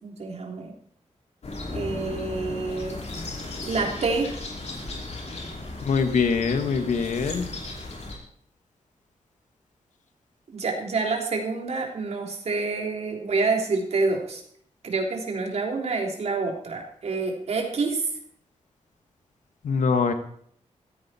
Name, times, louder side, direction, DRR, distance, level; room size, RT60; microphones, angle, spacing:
voice 1, 0.0-0.7 1.7-3.0 3.6-4.3 10.5-14.4 14.8-18.1, right 3 dB, 60° right, 1 dB, 3.4 m, -27 dB
sound 1, 1.4-8.2, left 2 dB, 60° left, 5.3 m, -36 dB
voice 2, 5.8-7.5 19.6-20.1, left 5 dB, 90° left, 8 dB, 1.7 m, -23 dB
15.5 x 14.5 x 4.4 m, 0.62 s
wide cardioid pair, 145°, 12 cm